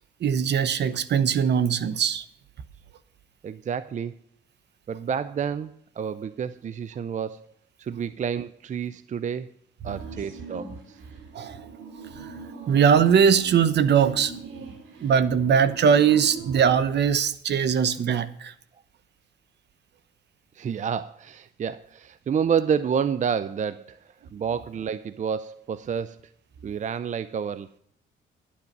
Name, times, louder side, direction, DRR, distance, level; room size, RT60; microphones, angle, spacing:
voice 1, 0.2-2.2 11.3-11.6 12.7-14.3 15.0-18.5, right 7 dB, 60° right, 15 dB, 0.9 m, -21 dB
voice 2, 3.4-4.2 4.9-7.5 7.8-9.5 9.8-11.0 20.6-24.0 24.3-26.2 26.6-27.7, right 7 dB, 40° right, 15 dB, 0.5 m, -29 dB
sound 1, 9.8-16.7, right 4 dB, 85° right, 2.6 m, -41 dB
11.5 x 8.5 x 5.3 m, 0.69 s
cardioid pair, 90°, 20 cm